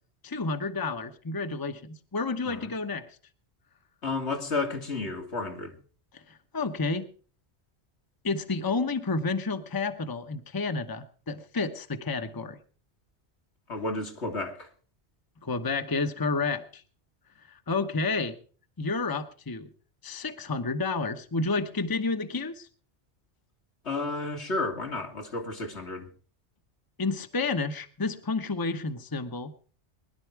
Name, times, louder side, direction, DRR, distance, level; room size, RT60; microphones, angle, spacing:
voice 1, 0.2-3.2 6.1-7.1 8.2-12.6 15.4-16.8 17.5-18.4 18.8-19.7 20.0-22.7 27.0-29.5, left 3 dB, 20° left, 0.9 m, -30 dB
voice 2, 4.0-5.7 13.7-14.7 23.8-26.1, left 3 dB, 75° left, 2.6 m, -32 dB
21.0 x 11.5 x 4.7 m
omnidirectional pair, 1.2 m